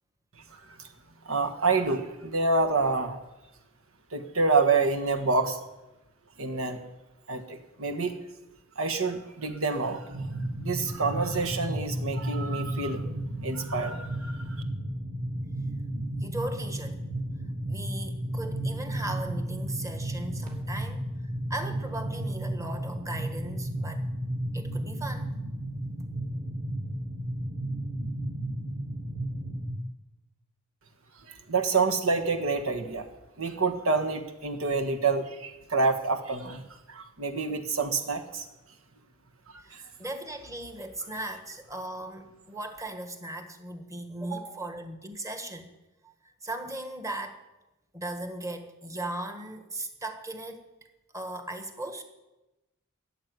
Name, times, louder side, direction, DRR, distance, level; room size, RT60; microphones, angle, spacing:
voice 1, 1.2-3.2 4.1-5.6 6.4-6.8 7.3-8.2 8.7-10.0 10.6-13.0 13.4-14.4 31.3-33.1 33.4-36.6 36.9-38.4, right 3 dB, 70° right, 6 dB, 1.6 m, -27 dB
sound 1, 10.1-29.7, right 1 dB, 40° right, 3.0 m, -33 dB
voice 2, 16.2-17.0 17.7-21.0 21.5-24.1 24.5-25.3 39.6-45.7 46.0-46.1 46.4-47.4 47.9-50.7 51.1-52.0, right 1 dB, 15° right, 7 dB, 1.5 m, -37 dB
14.0 x 7.4 x 9.6 m, 1.0 s
head